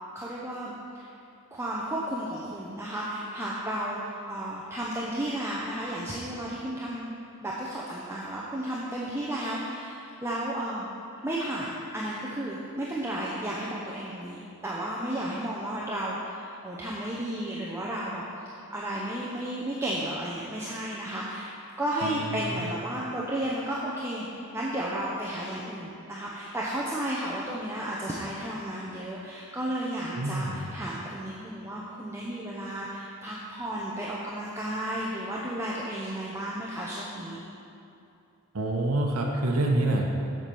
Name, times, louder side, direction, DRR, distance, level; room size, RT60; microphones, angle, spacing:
voice 1, 0.1-1.1 1.5-7.1 7.4-10.8 11.2-18.2 18.7-21.5 21.8-24.3 24.5-37.4, right 1 dB, 10° right, -5 dB, 0.7 m, -33 dB
voice 2, 22.0-22.7 30.1-30.6 38.5-40.1, right 1 dB, 85° right, 0 dB, 0.9 m, -27 dB
7.7 x 5.9 x 6.9 m, 2.7 s
head